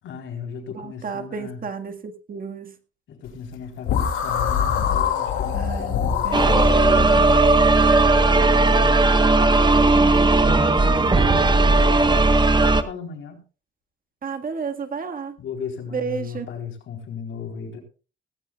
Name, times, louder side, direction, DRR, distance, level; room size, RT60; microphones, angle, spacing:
voice 1, 0.0-1.6 3.1-7.3 8.2-9.0 11.0-13.4 15.4-17.8, left 6 dB, 75° left, 3 dB, 4.1 m, -36 dB
voice 2, 0.7-2.7 4.9-5.0 5.5-7.3 9.7-10.4 14.2-15.3 15.9-16.5, right 6 dB, 45° right, 6 dB, 1.8 m, -32 dB
sound 1, 3.9-7.1, left 8 dB, 90° left, 2.5 m, -24 dB
sound 2, 6.3-12.8, right 2 dB, 20° right, 1.2 m, -17 dB
18.0 x 15.5 x 2.4 m, 0.34 s
cardioid pair, 90°, 20 cm